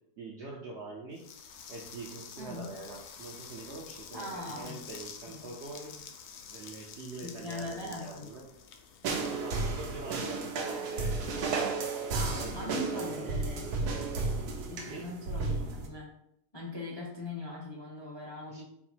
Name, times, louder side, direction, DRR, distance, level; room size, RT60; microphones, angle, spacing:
voice 1, 0.2-1.3 1.7-6.0 6.5-8.5 9.3-11.9 12.2-14.2 14.9-15.1 18.5-18.6, right 3 dB, 65° right, -2 dB, 0.7 m, -44 dB
sound 1, 1.1-10.1, left 7 dB, 70° left, 0.9 m, -49 dB
voice 2, 4.1-4.8 5.3-5.5 7.2-8.3 12.1-13.9 14.7-16.1 16.5-18.6, left 1 dB, 30° left, -3 dB, 0.4 m, -40 dB
sound 2, 9.0-15.9, right 3 dB, 80° right, 1.2 m, -33 dB
4.7 x 2.0 x 4.3 m, 0.77 s
omnidirectional pair, 1.7 m